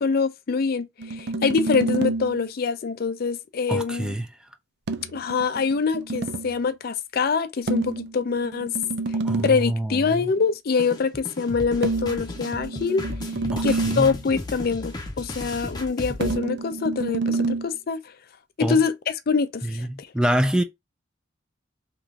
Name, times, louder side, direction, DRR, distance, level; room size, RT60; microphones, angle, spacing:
voice 1, 0.0-4.1 5.1-8.7 9.4-13.1 13.6-18.0 18.6-20.1, left 5 dB, 55° left, 0.4 m, -25 dB
sound 1, 1.0-2.4 4.9-6.6 7.7-9.7 11.8-14.2 16.2-17.7, right 3 dB, 60° right, 0.5 m, -28 dB
voice 2, 3.7-4.3 9.2-10.3 13.5-14.1 18.6-18.8 19.6-20.6, right 1 dB, 5° right, 0.4 m, -26 dB
sound 2, 10.8-16.3, left 2 dB, 20° left, 0.9 m, -35 dB
3.4 x 3.0 x 2.5 m
head